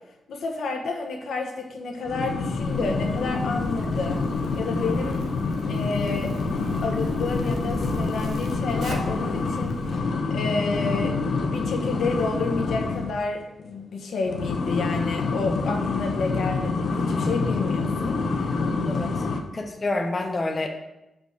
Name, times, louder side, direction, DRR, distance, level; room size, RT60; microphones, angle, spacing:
voice 1, 0.3-4.2 4.6-5.2 5.7-6.3 6.8-11.2 11.4-18.6, left 3 dB, 85° left, 2 dB, 1.1 m, -30 dB
sound 1, 2.0-13.2 14.2-19.4, left 4 dB, 60° left, 0.7 m, -27 dB
Zipper (clothing), 2.5-10.0, right 2 dB, 75° right, 1.0 m, -38 dB
voice 2, 18.8-19.3 19.5-20.7, left 2 dB, 25° left, 3 dB, 0.6 m, -28 dB
5.3 x 4.8 x 6.3 m, 0.94 s
wide cardioid pair, 170°, 0 cm